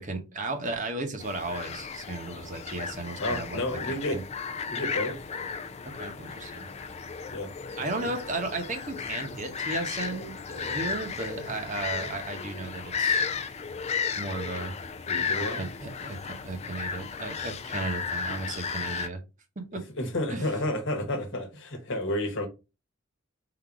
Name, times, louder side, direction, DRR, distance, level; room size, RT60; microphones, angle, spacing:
voice 1, 0.0-3.6 4.1-4.2 5.8-6.7 7.8-13.2 14.1-14.8 15.1-19.2 19.6-19.9 20.3-20.5, right 2 dB, 40° right, 0.9 m, -35 dB
sound 1, 1.2-19.1, left 5 dB, 30° left, 0.4 m, -34 dB
voice 2, 3.2-4.2 4.7-5.2 7.3-7.5 8.0-8.1 15.1-15.6 20.0-22.5, left 1 dB, 65° left, 1.2 m, -31 dB
3.9 x 2.6 x 4.6 m
head